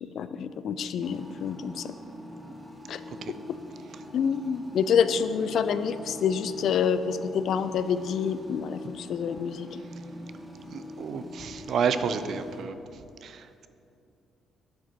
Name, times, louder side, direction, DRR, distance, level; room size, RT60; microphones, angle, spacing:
voice 1, 0.2-1.9 2.9-3.0 4.1-9.8, left 7 dB, 70° left, 12 dB, 0.3 m, -27 dB
sound 1, 1.0-12.6, left 1 dB, 10° right, 1.1 m, -44 dB
voice 2, 10.7-12.7 13.2-13.7, right 6 dB, 65° right, 11 dB, 0.4 m, -30 dB
10.0 x 5.0 x 4.5 m, 2.7 s
cardioid pair, 90°, 0 cm